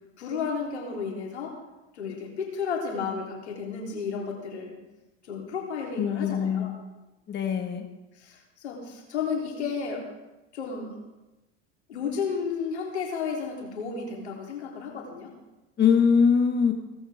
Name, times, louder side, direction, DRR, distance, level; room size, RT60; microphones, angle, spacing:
voice 1, 0.2-1.6 1.9-4.8 5.3-6.8 8.1-10.1 10.5-11.0 11.9-15.3, left 5 dB, 90° left, -1 dB, 3.5 m, -32 dB
voice 2, 6.0-6.7 7.3-7.8 15.8-16.7, left 6 dB, 30° left, 4 dB, 1.7 m, -22 dB
17.5 x 14.5 x 3.6 m, 1.1 s
hypercardioid pair, 90°, 33 cm